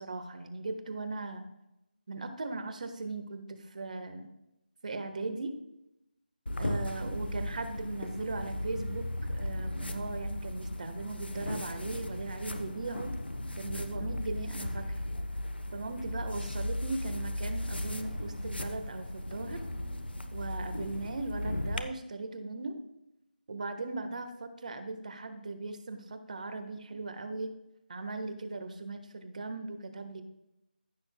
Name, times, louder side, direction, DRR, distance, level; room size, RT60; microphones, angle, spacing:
voice 1, 0.0-1.4 2.1-4.3 4.8-5.5 6.6-13.2 13.6-15.1 15.7-19.6 20.3-22.8 23.5-27.5 27.9-30.2, right 3 dB, 50° right, 8 dB, 1.3 m, -38 dB
sound 1, 6.5-21.8, left 1 dB, 85° left, 1.0 m, -36 dB
15.0 x 7.2 x 2.2 m, 0.89 s
figure-of-eight pair, 160°, 5 cm